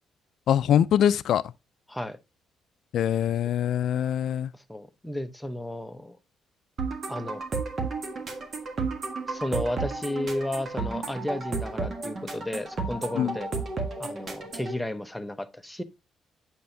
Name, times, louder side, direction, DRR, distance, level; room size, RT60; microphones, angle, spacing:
voice 1, 0.5-1.4 2.9-4.5 13.2-13.4, left 10 dB, 70° left, 0.3 m, -23 dB
voice 2, 4.5-6.2 7.1-7.4 9.3-13.5 14.0-15.8, left 1 dB, 5° left, 0.8 m, -33 dB
sound 1, 6.8-14.8, right 4 dB, 45° right, 1.5 m, -33 dB
7.8 x 5.5 x 2.7 m
cardioid pair, 90°, 0 cm